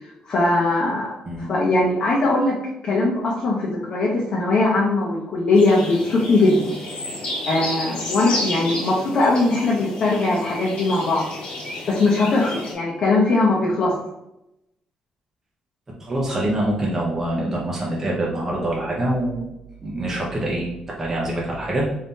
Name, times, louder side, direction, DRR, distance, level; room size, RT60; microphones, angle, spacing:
voice 1, 0.2-1.1 1.4-2.6 2.8-6.7 7.5-11.3 11.9-13.9, left 2 dB, 40° left, -5 dB, 0.8 m, -20 dB
sound 1, 5.5-12.7, left 1 dB, 55° left, 1.2 m, -31 dB
voice 2, 16.0-19.5 19.8-20.7 21.0-21.9, right 1 dB, 15° right, -4 dB, 0.7 m, -25 dB
4.0 x 2.7 x 3.6 m, 0.88 s
cardioid pair, 170°, 2 cm